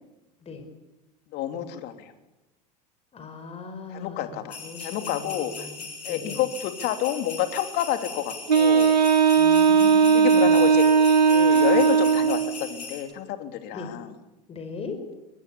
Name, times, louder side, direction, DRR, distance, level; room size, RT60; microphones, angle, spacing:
voice 1, 1.3-2.1 3.9-5.7 6.0-8.9 10.1-10.9 11.2-14.2, left 11 dB, 50° left, 8 dB, 3.1 m, -29 dB
voice 2, 3.1-6.4 9.4-10.6 13.7-13.9 14.5-15.0, left 4 dB, 30° left, 7 dB, 5.3 m, -39 dB
sound 1, 4.5-13.0, left 4 dB, 80° left, 7.2 m, -39 dB
Wind instrument woodwind instrument, 8.5-12.6, right 6 dB, 90° right, 2.3 m, -18 dB
22.5 x 21.5 x 8.6 m, 0.99 s
hypercardioid pair, 80°, 21 cm